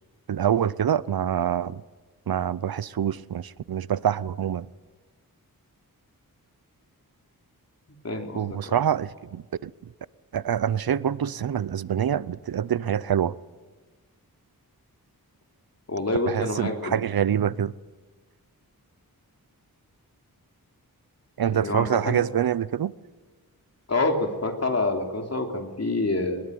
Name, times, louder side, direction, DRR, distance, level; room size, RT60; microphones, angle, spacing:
voice 1, 0.3-1.8 2.3-4.7 8.4-9.7 10.3-13.4 16.3-17.7 21.4-22.9, right 9 dB, 75° right, 0.7 m, -25 dB
voice 2, 8.0-8.8 15.9-17.0 21.5-22.3 23.9-26.4, left 2 dB, 45° left, 3.6 m, -27 dB
22.5 x 21.5 x 9.5 m
wide cardioid pair, 100°, 36 cm